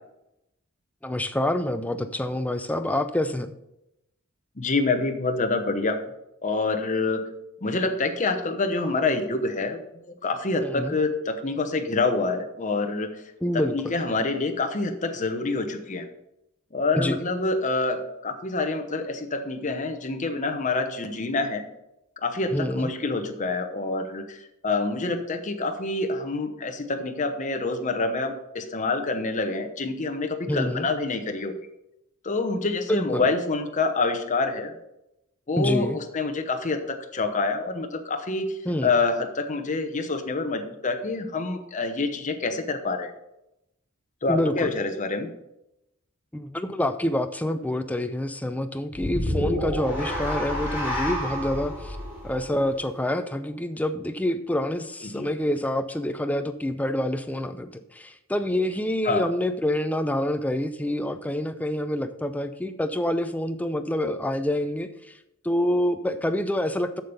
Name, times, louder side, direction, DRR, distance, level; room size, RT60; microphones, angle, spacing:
voice 1, 1.0-3.5 10.6-11.0 13.4-13.9 16.9-17.2 22.5-22.9 30.5-30.9 32.9-33.2 35.6-36.0 38.7-38.9 44.3-44.7 46.3-52.0 52.2-57.7 58.0-64.9 65.4-67.0, left 1 dB, 5° left, 9 dB, 0.5 m, -27 dB
voice 2, 4.6-6.0 6.4-7.3 7.6-13.2 13.5-16.1 16.7-21.6 22.2-31.5 32.2-34.7 35.5-43.1 44.2-45.3 55.0-55.3 59.0-59.3, left 3 dB, 35° left, 6 dB, 0.9 m, -27 dB
sound 1, 48.9-53.3, left 1 dB, 10° right, 3.0 m, -30 dB
7.4 x 7.0 x 5.4 m, 0.87 s
head